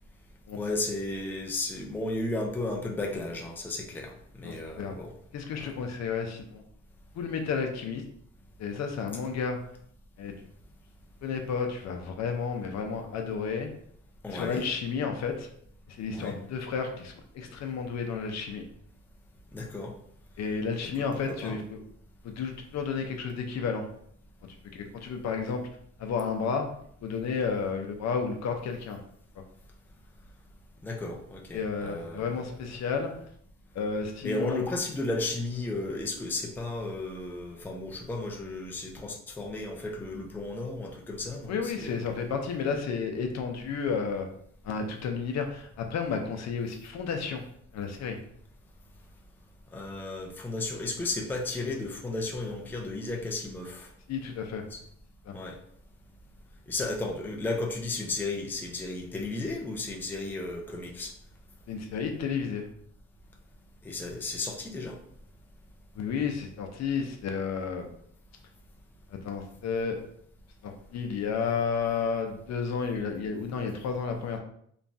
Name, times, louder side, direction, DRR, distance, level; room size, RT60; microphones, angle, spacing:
voice 1, 0.5-4.1 4.4-5.1 14.2-14.7 16.1-16.4 19.5-19.9 21.4-21.6 30.8-32.3 34.2-41.5 41.8-42.0 49.7-53.9 54.7-54.8 55.3-55.6 56.7-61.1 63.8-65.0, left 2 dB, 5° left, 1 dB, 0.4 m, -34 dB
voice 2, 4.4-4.9 5.3-6.6 7.2-8.0 8.6-9.6 10.2-10.3 11.2-13.7 14.3-15.5 15.9-18.7 20.4-21.8 22.2-23.8 24.4-25.6 26.0-26.7 27.0-29.0 31.5-33.1 33.7-34.6 41.5-44.3 44.6-47.4 47.7-48.2 54.1-54.6 55.3-55.4 61.7-62.7 66.0-67.9 69.1-70.0 70.6-74.4, left 5 dB, 60° left, 4 dB, 0.6 m, -32 dB
3.0 x 2.2 x 2.6 m, 0.65 s
cardioid pair, 90°, 30 cm